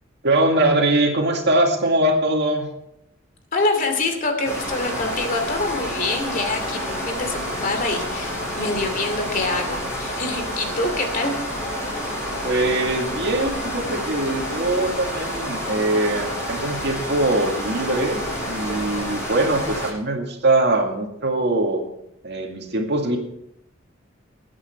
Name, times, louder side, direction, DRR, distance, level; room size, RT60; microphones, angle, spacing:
voice 1, 0.2-2.7 12.4-21.9 22.2-23.2, right 2 dB, 60° right, 2 dB, 2.2 m, -22 dB
voice 2, 3.5-11.4 11.9-12.0, left 2 dB, 45° left, 5 dB, 2.7 m, -25 dB
sound 1, 4.4-19.9, equal, 15° left, 6.7 m, -29 dB
20.5 x 8.9 x 4.5 m, 0.79 s
head